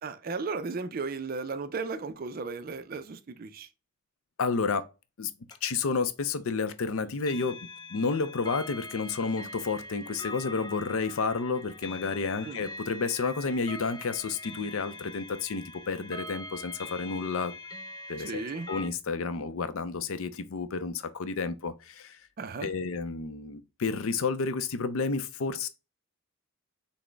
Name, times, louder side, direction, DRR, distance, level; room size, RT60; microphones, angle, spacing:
voice 1, 0.0-3.7 12.4-12.6 18.2-18.7 22.4-22.7, right 4 dB, 40° right, 0.4 m, -35 dB
voice 2, 4.4-4.8 5.2-5.3 5.6-7.6 7.9-17.5 18.1-18.4 18.7-22.2 22.6-25.7, left 4 dB, 70° left, 0.5 m, -31 dB
sound 1, 5.5-5.6 7.2-18.9, left 2 dB, 20° left, 0.5 m, -43 dB
6.0 x 2.1 x 3.3 m
head